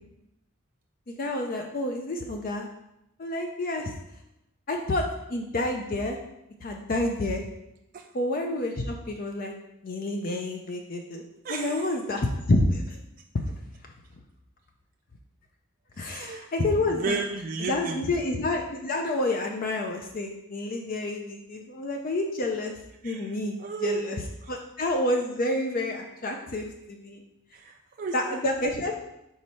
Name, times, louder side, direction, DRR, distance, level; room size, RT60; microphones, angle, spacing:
voice 1, 1.1-2.7 3.2-3.9 4.7-6.2 6.6-7.4 8.1-9.5 9.8-11.2 11.5-13.0 16.0-17.2 17.6-22.7 23.0-23.6 23.8-24.2 24.5-27.2 28.1-28.9, left 2 dB, 45° left, 3 dB, 0.5 m, -29 dB
voice 2, 11.4-11.9 16.0-16.5 16.9-18.1 23.0-24.0 24.4-24.6 27.5-28.4, right 4 dB, 45° right, 2 dB, 0.4 m, -34 dB
4.7 x 4.2 x 5.4 m, 0.86 s
head